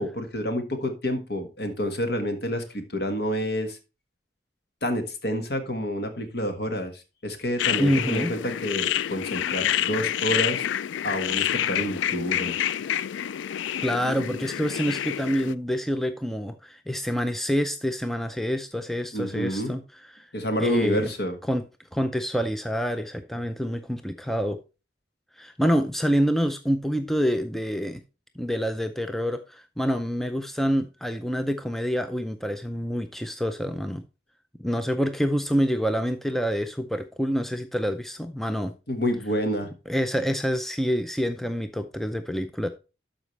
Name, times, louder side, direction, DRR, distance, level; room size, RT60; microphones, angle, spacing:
voice 1, 0.0-3.8 4.8-6.9 7.2-10.6 11.0-12.5 19.1-19.8 20.3-21.3 38.9-39.7, equal, 60° left, 1.5 m, -28 dB
sound 1, 7.6-15.5, left 10 dB, 85° left, 0.3 m, -28 dB
voice 2, 7.8-8.3 13.8-19.8 20.1-20.3 20.6-21.1 21.5-21.6 21.9-24.6 25.4-28.0 28.4-34.0 34.6-38.7 39.9-42.7, equal, ahead, 0.4 m, -27 dB
12.5 x 5.0 x 3.2 m
head